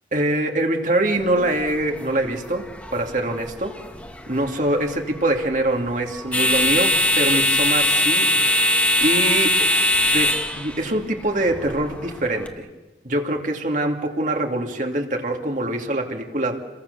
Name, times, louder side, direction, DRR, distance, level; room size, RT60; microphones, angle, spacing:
voice 1, 0.1-3.8 4.3-9.7 10.0-12.7 13.0-16.6, right 1 dB, 45° right, 2 dB, 2.7 m, -24 dB
sound 1, 1.2-12.5, left 1 dB, 10° left, 1.9 m, -22 dB
29.5 x 22.5 x 7.0 m, 1.2 s
head